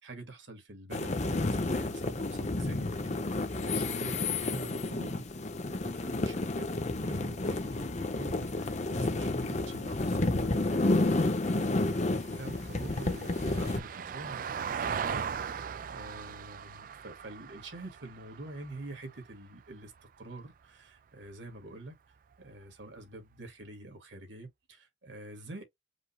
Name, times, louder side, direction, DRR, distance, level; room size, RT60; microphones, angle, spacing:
voice 1, 0.0-21.9 22.4-25.6, right 2 dB, 70° right, 1.7 m, -47 dB
sound 1, 0.9-13.8, left 2 dB, 35° left, 0.7 m, -31 dB
Vehicle, 9.6-20.0 22.3-22.4, right 7 dB, 45° right, 0.3 m, -40 dB
5.0 x 2.1 x 4.2 m
head